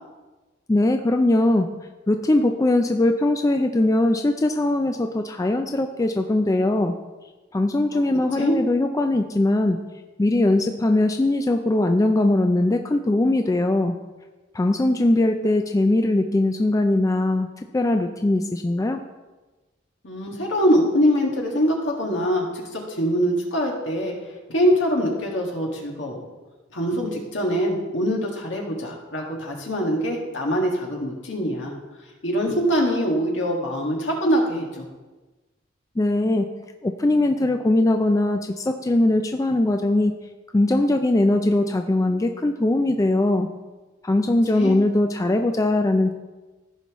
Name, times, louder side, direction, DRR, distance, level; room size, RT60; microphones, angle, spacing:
voice 1, 0.7-1.7 2.1-6.9 7.5-9.8 10.2-13.9 14.5-17.5 17.7-19.0 36.0-36.5 36.8-40.1 40.5-43.5 44.0-46.1, left 2 dB, 15° left, 6 dB, 0.3 m, -20 dB
voice 2, 20.0-24.1 24.5-26.2 26.7-31.7 32.2-34.8 44.5-44.8, equal, 70° left, -1 dB, 1.8 m, -23 dB
15.0 x 5.6 x 3.1 m, 1.2 s
head